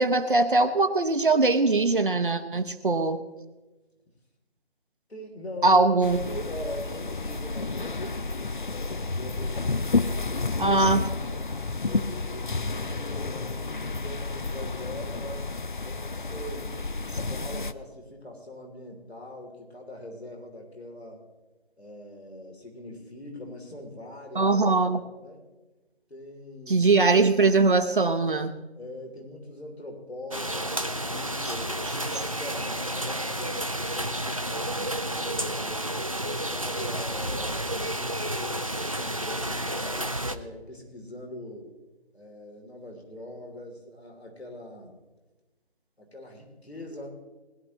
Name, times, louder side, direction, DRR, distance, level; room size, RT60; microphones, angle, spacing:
voice 1, 0.0-3.2 5.6-6.2 10.6-11.0 24.3-25.0 26.7-28.5, right 3 dB, 50° right, 7 dB, 0.8 m, -21 dB
voice 2, 5.1-5.9 6.2-8.8 9.1-10.8 11.8-13.6 14.0-15.5 15.8-16.8 17.3-21.2 21.8-24.6 24.9-25.4 26.1-26.9 28.7-36.0 36.5-38.6 39.0-41.7 42.1-45.0 46.0-47.1, left 1 dB, 70° left, 1 dB, 3.3 m, -42 dB
sound 1, 6.0-17.7, left 3 dB, 50° left, 0.5 m, -31 dB
sound 2, 30.3-40.4, right 1 dB, 35° right, 0.5 m, -31 dB
20.5 x 11.5 x 3.1 m, 1.1 s
figure-of-eight pair, 160°, 32 cm